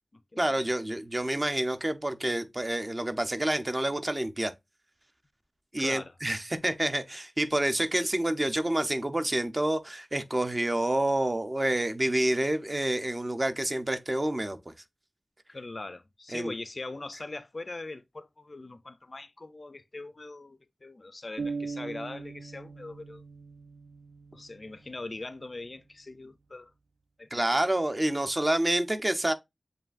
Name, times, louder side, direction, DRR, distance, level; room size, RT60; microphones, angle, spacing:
voice 1, 0.4-4.5 5.7-14.7 16.3-16.5 27.3-29.3, right 1 dB, 25° right, 0.6 m, -28 dB
voice 2, 5.8-6.1 15.5-23.2 24.3-26.7 27.2-27.6, left 2 dB, 45° left, 0.3 m, -41 dB
sound 1, 21.4-25.1, right 4 dB, 85° right, 0.3 m, -40 dB
7.5 x 2.5 x 2.4 m
wide cardioid pair, 90°, 0 cm